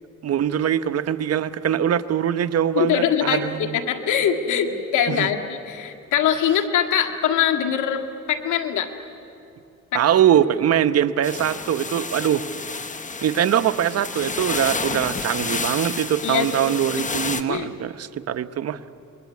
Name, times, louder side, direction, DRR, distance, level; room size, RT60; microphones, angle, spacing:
voice 1, 0.2-3.8 5.1-5.3 9.9-12.5 13.2-18.8, right 10 dB, 55° right, 11 dB, 1.0 m, -22 dB
voice 2, 2.8-8.0 8.3-8.9 9.9-10.0 16.2-16.6 17.5-17.7, left 9 dB, 80° left, 4 dB, 2.0 m, -22 dB
sound 1, 11.2-17.4, left 4 dB, 25° left, 1.3 m, -30 dB
26.5 x 21.0 x 9.5 m, 2.7 s
cardioid pair, 90°, 30 cm